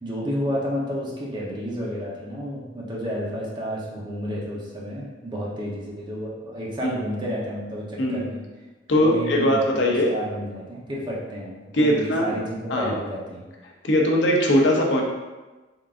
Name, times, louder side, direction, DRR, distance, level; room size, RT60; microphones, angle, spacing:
voice 1, 0.0-8.4 8.9-13.4, equal, 25° right, -4 dB, 0.7 m, -31 dB
voice 2, 8.9-10.1 11.7-12.3 12.7-12.9 13.8-15.0, equal, 80° left, 0 dB, 0.6 m, -20 dB
3.8 x 3.5 x 2.5 m, 1.2 s
head